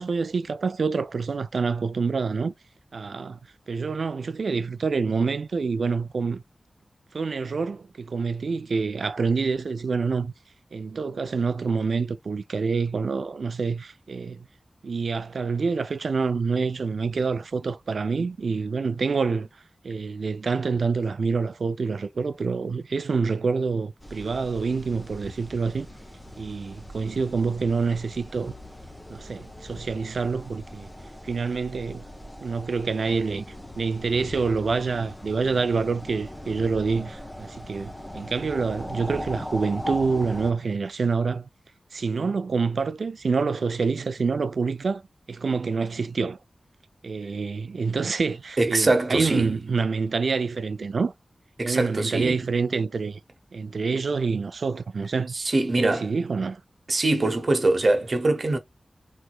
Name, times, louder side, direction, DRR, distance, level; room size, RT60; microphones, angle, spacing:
voice 1, 0.0-2.5 2.9-3.4 3.7-6.4 7.1-10.3 10.7-14.5 14.8-19.5 19.8-25.9 26.4-28.5 29.1-30.9 31.2-32.0 32.4-33.4 33.8-41.5 41.9-45.0 45.3-46.4 47.0-51.1 51.6-53.2 53.5-55.3 55.8-56.6, right 4 dB, 75° right, 0.4 m, -27 dB
sound 1, 24.0-40.5, left 1 dB, 10° left, 0.7 m, -40 dB
voice 2, 48.6-49.5 51.6-52.4 55.3-56.1 56.9-58.6, right 2 dB, 50° right, 0.9 m, -23 dB
3.4 x 3.0 x 2.3 m
wide cardioid pair, 105°, 0 cm